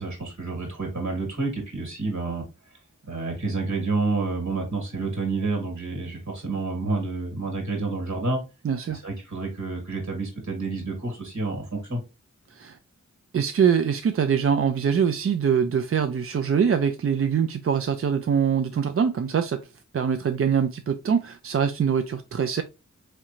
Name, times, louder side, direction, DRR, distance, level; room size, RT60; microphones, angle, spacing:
voice 1, 0.0-2.4 3.1-8.4 8.9-12.0, right 3 dB, 65° right, 2.1 m, -29 dB
voice 2, 8.6-9.0 12.5-12.8 13.3-19.6 19.9-22.6, right 7 dB, 45° right, 0.4 m, -23 dB
3.7 x 3.2 x 3.0 m
cardioid pair, 40°, 31 cm